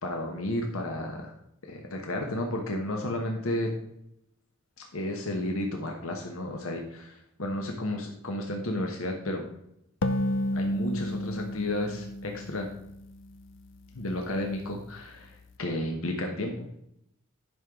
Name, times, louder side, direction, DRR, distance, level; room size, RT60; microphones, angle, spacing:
voice 1, 0.0-1.3 1.6-3.7 4.9-9.4 10.5-12.7 13.9-16.7, left 1 dB, 75° left, 2 dB, 1.1 m, -32 dB
sound 1, 10.0-13.5, left 1 dB, 60° left, 0.5 m, -31 dB
11.0 x 5.4 x 3.6 m, 0.77 s
head